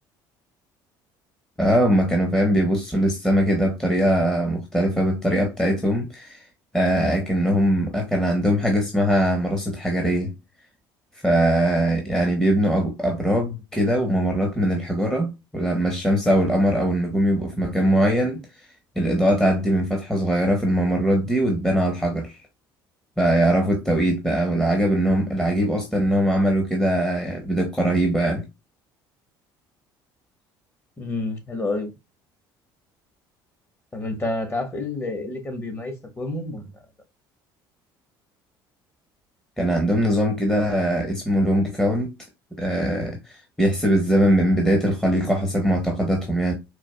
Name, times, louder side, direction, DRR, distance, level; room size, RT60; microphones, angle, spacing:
voice 1, 1.6-6.4 6.7-10.3 11.2-18.5 19.0-22.4 23.2-28.4 39.6-42.1 42.6-46.5, equal, 5° left, 1.1 m, -21 dB
voice 2, 31.0-31.9 33.9-36.7, left 2 dB, 20° left, 1.4 m, -29 dB
4.5 x 2.4 x 2.2 m
hypercardioid pair, 65°, 11 cm